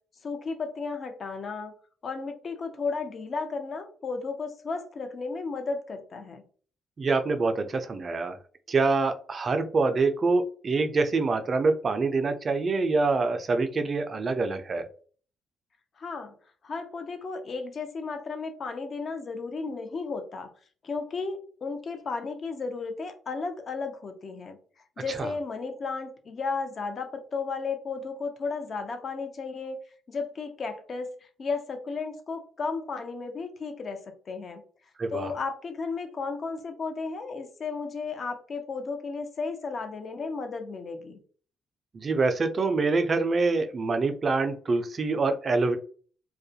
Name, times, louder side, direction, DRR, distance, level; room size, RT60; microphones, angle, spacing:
voice 1, 0.2-1.7 2.0-6.4 16.0-16.3 16.6-20.5 20.8-24.6 25.0-29.8 30.1-34.6 35.1-41.2, left 4 dB, 50° left, 6 dB, 0.5 m, -34 dB
voice 2, 7.0-8.4 8.7-14.9 25.2-25.3 35.0-35.3 41.9-45.8, right 3 dB, 40° right, 8 dB, 0.3 m, -25 dB
2.3 x 2.1 x 2.6 m, 0.43 s
cardioid pair, 90°, 0 cm